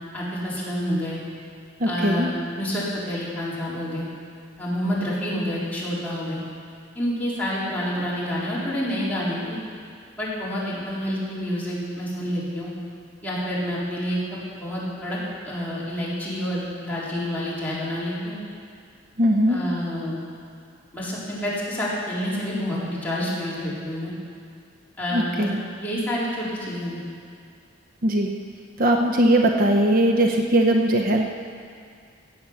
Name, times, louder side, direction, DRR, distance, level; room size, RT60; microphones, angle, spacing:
voice 1, 0.1-1.2 1.9-4.1 4.6-6.4 6.9-9.6 10.2-12.7 13.2-14.2 14.6-15.2 15.4-18.4 19.5-20.2 20.9-24.1 25.0-25.5 25.8-27.0, equal, 10° left, -9 dB, 4.0 m, -28 dB
voice 2, 1.8-2.3 19.2-19.6 25.1-25.6 28.0-28.4 28.8-31.3, right 1 dB, 50° right, 3 dB, 0.8 m, -20 dB
16.5 x 8.3 x 7.0 m, 2.2 s
head